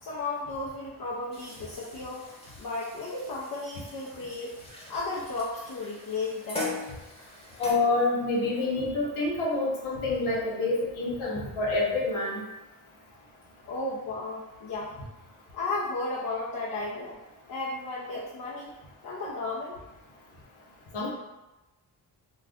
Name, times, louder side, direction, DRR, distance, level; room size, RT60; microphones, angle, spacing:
voice 1, 0.0-2.3 2.6-4.6 4.9-6.8 13.7-15.0 15.5-17.2 17.5-18.7 19.0-19.8, left 3 dB, 45° left, -5 dB, 0.6 m, -34 dB
sound 1, 1.3-7.7, left 2 dB, 10° left, 1.0 m, -41 dB
voice 2, 7.6-12.4 20.9-21.1, left 2 dB, 80° left, -5 dB, 0.9 m, -27 dB
2.4 x 2.4 x 3.4 m, 1.0 s
supercardioid pair, 45°, 48 cm